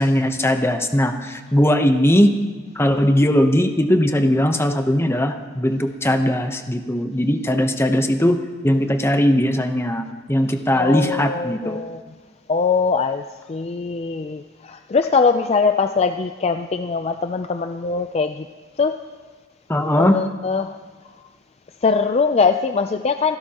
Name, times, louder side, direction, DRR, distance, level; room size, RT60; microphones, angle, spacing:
voice 1, 0.0-2.4 2.8-8.4 8.6-11.8 19.7-20.2, equal, 15° left, 6 dB, 0.8 m, -19 dB
voice 2, 10.7-12.0 12.5-18.5 18.8-19.0 19.9-20.8 21.8-23.4, left 5 dB, 30° left, 8 dB, 0.4 m, -21 dB
28.0 x 12.5 x 2.9 m, 1.5 s
head